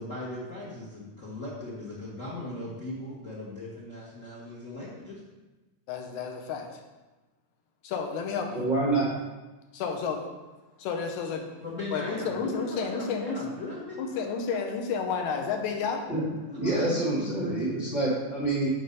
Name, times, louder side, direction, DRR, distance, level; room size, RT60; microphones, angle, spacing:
voice 1, 0.0-5.2 11.6-14.2 15.7-15.9 16.3-18.1, left 2 dB, 55° left, -7 dB, 0.9 m, -38 dB
voice 2, 5.9-6.7 7.8-8.7 9.7-10.2 10.8-11.4 11.9-13.4 14.0-16.0, left 5 dB, 75° left, 3 dB, 2.1 m, -31 dB
voice 3, 8.5-9.1 16.1-16.2 16.5-18.7, right 2 dB, 55° right, -7 dB, 0.5 m, -27 dB
6.0 x 5.0 x 5.3 m, 1.1 s
omnidirectional pair, 3.6 m